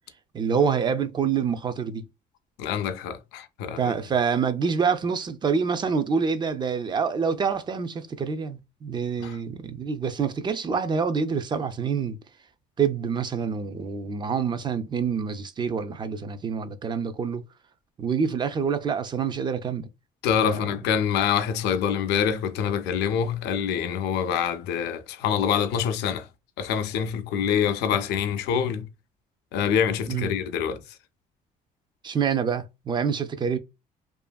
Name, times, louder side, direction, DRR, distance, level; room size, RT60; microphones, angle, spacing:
voice 1, 0.3-2.1 3.8-12.2 12.8-17.4 18.0-19.9 20.4-20.7 30.1-30.3 32.0-33.6, right 6 dB, 25° right, 0.4 m, -26 dB
voice 2, 2.6-3.9 9.2-9.4 20.2-26.3 26.6-28.9 29.5-30.8, left 8 dB, 90° left, 0.5 m, -25 dB
2.7 x 2.5 x 2.2 m
cardioid pair, 110°, 17 cm